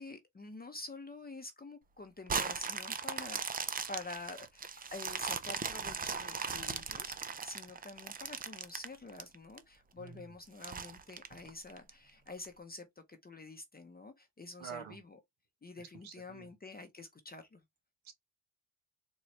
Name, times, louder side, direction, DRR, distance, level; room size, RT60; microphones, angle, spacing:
voice 1, 0.0-15.2 15.6-17.6, left 3 dB, 20° left, 0.7 m, -48 dB
sound 1, 2.3-9.6 10.1-10.2 10.6-11.9 12.4-12.5, right 5 dB, 20° right, 0.4 m, -38 dB
voice 2, 10.0-10.3 14.6-15.0 15.8-16.5 18.0-18.1, right 7 dB, 80° right, 1.3 m, -48 dB
4.1 x 2.3 x 3.1 m
cardioid pair, 90°, 47 cm